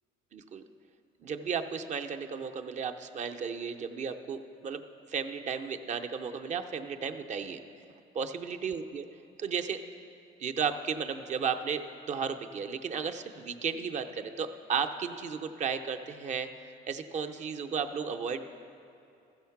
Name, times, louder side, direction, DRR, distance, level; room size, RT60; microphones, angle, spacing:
voice 1, 0.3-0.6 1.2-4.8 5.1-7.6 8.1-9.1 9.4-9.8 10.4-16.5 16.9-18.4, right 6 dB, 45° right, 7 dB, 0.6 m, -34 dB
14.5 x 6.5 x 5.8 m, 2.7 s
cardioid pair, 110°, 17 cm